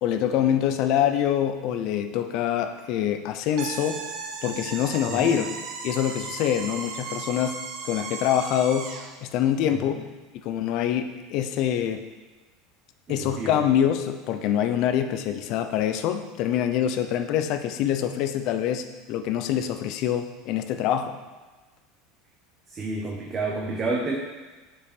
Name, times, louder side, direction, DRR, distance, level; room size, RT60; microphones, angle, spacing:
voice 1, 0.0-4.0 4.4-5.5 5.8-7.6 7.8-8.9 9.2-10.0 10.4-12.0 13.1-21.2, left 10 dB, 45° left, 8 dB, 0.6 m, -25 dB
sound 1, 3.6-9.1, right 5 dB, 45° right, 1.0 m, -36 dB
voice 2, 5.1-5.5 9.7-10.0 13.1-13.6 22.7-24.2, right 3 dB, 20° right, -1 dB, 0.8 m, -30 dB
6.9 x 5.5 x 5.0 m, 1.3 s
supercardioid pair, 165°, 0 cm